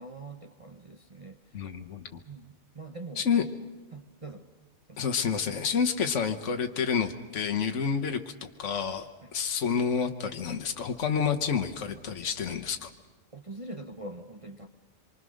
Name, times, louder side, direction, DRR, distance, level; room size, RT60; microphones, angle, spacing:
voice 1, 0.0-1.7 2.3-3.3 3.9-4.4 4.9-5.0 9.2-9.3 13.3-14.7, right 2 dB, 30° right, 5 dB, 0.9 m, -43 dB
voice 2, 1.5-2.2 3.2-3.4 5.0-12.9, left 6 dB, 65° left, 5 dB, 1.5 m, -29 dB
26.0 x 24.0 x 6.4 m, 1.3 s
omnidirectional pair, 1.4 m